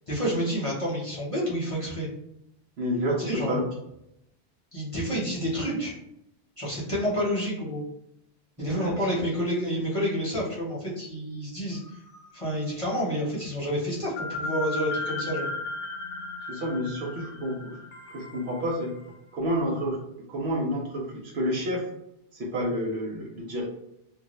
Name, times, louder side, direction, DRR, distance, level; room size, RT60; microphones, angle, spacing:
voice 1, 0.1-2.1 3.2-3.6 4.7-5.9 6.6-7.8 8.6-11.8 12.3-15.5, equal, 30° left, -6 dB, 1.0 m, -29 dB
voice 2, 2.8-3.6 8.6-9.0 16.5-17.8 18.1-19.0 19.3-20.0 20.3-21.8 22.3-23.6, equal, 60° right, -2 dB, 0.9 m, -29 dB
sound 1, 11.7-12.6 12.9-13.0 14.2-19.1, left 2 dB, 75° left, 0.9 m, -35 dB
2.6 x 2.5 x 3.0 m, 0.81 s
omnidirectional pair, 1.2 m